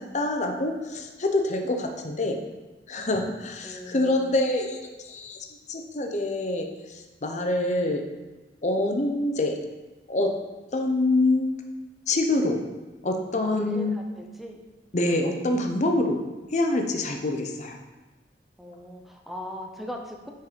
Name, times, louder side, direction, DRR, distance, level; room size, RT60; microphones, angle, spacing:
voice 1, 0.0-2.4 2.9-5.4 5.7-8.0 8.6-9.6 10.1-10.3 10.7-11.5 12.1-12.6 13.0-14.0 14.9-16.2 16.5-17.8, left 2 dB, 40° left, 4 dB, 0.7 m, -26 dB
voice 2, 3.6-4.3 13.4-14.6 18.6-20.3, equal, ahead, 2 dB, 0.6 m, -39 dB
5.9 x 4.4 x 5.1 m, 1.2 s
head